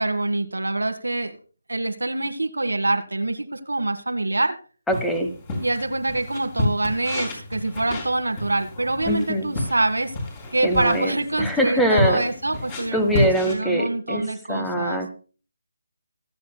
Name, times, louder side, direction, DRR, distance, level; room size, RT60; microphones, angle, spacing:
voice 1, 0.0-1.4 1.7-4.6 5.6-10.1 10.5-15.0, right 2 dB, 90° right, 9 dB, 1.5 m, -25 dB
sound 1, 4.9-13.5, left 2 dB, 25° left, 4.4 m, -30 dB
voice 2, 4.9-5.3 9.1-9.5 10.6-11.1 11.4-12.2 12.9-14.2 14.5-15.2, equal, 5° left, 6 dB, 1.3 m, -23 dB
25.0 x 8.6 x 2.2 m, 0.38 s
figure-of-eight pair, 155°, 0 cm